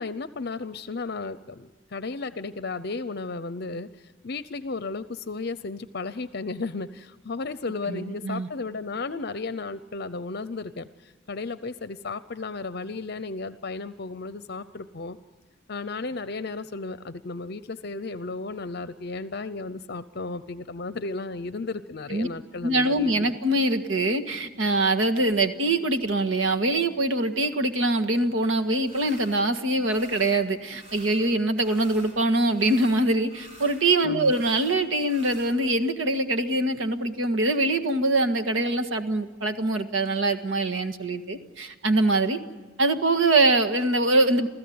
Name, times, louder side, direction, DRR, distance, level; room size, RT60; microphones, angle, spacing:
voice 1, 0.0-3.9 4.2-15.2 15.7-23.3 34.0-34.4, left 3 dB, 50° left, 13 dB, 0.7 m, -34 dB
voice 2, 7.9-8.5 22.1-22.3 22.6-42.4 42.8-44.5, right 2 dB, 75° right, 7 dB, 1.7 m, -23 dB
sound 1, 28.8-29.4 29.8-30.4 30.7-32.2 32.5-35.5, equal, 30° right, 6.9 m, -48 dB
28.0 x 15.5 x 9.5 m, 1.3 s
head